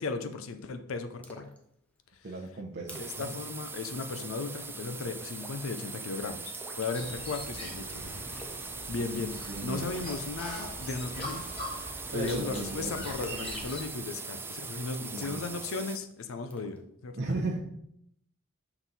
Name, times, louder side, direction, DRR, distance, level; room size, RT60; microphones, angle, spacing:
voice 1, 0.0-1.5 3.0-11.4 11.7-17.2, left 4 dB, 70° left, 8 dB, 0.5 m, -36 dB
Splash splatter, 1.2-1.6 2.0-2.1 2.5-2.6 2.8-3.3 3.5-3.8 4.1-4.4 5.4-5.7 6.5-7.4 8.4-8.7 8.9-9.3 9.8-10.2 10.5-10.6 11.1-11.4 13.2-14.4 15.1-16.0 16.5-16.8, left 1 dB, 5° left, 0.8 m, -48 dB
voice 2, 2.2-3.3 9.5-9.9 12.1-12.9 15.0-15.5 17.1-17.6, right 2 dB, 55° right, -1 dB, 0.7 m, -35 dB
sound 1, 2.9-16.0, right 4 dB, 10° right, 0.3 m, -41 dB
sound 2, 6.9-13.9, equal, 30° left, 1.7 m, -42 dB
6.1 x 3.9 x 4.0 m, 0.73 s
head